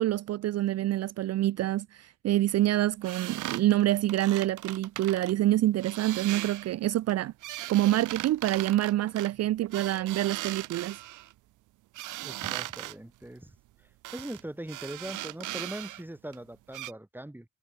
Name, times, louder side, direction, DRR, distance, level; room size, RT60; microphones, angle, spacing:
voice 1, 0.0-7.3 7.7-11.0, right 14 dB, 60° right, 0.5 m, -26 dB
sound 1, 3.0-5.3 5.8-6.7 7.1-11.3 11.9-12.9 14.0-14.4 14.7-16.0 16.3-16.4 16.7-16.9, right 16 dB, 80° right, 1.0 m, -38 dB
voice 2, 12.2-17.5, right 1 dB, 5° right, 5.3 m, -41 dB
cardioid pair, 90°, 30 cm